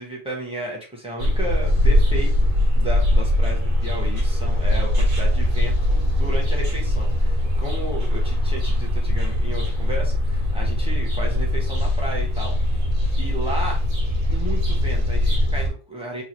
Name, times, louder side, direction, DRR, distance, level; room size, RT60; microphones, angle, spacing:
voice 1, 0.0-12.6 13.2-13.8 14.3-16.2, right 1 dB, 5° right, -2 dB, 1.2 m, -33 dB
sound 1, 1.2-15.7, left 1 dB, 80° right, 1.7 m, -21 dB
3.9 x 2.7 x 3.0 m, 0.35 s
omnidirectional pair, 1.4 m